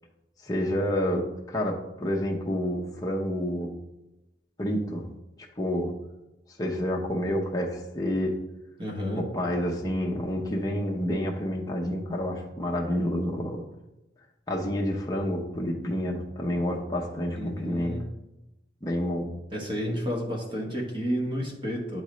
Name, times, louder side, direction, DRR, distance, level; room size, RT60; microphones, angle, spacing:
voice 1, 0.4-3.7 4.6-5.0 5.6-5.9 6.6-8.3 9.1-13.6 14.5-17.9 18.8-19.3, equal, 20° left, -2 dB, 0.7 m, -29 dB
voice 2, 8.8-9.2 17.3-18.0 19.5-22.0, equal, 25° right, 0 dB, 1.2 m, -31 dB
10.5 x 3.8 x 3.1 m, 0.96 s
head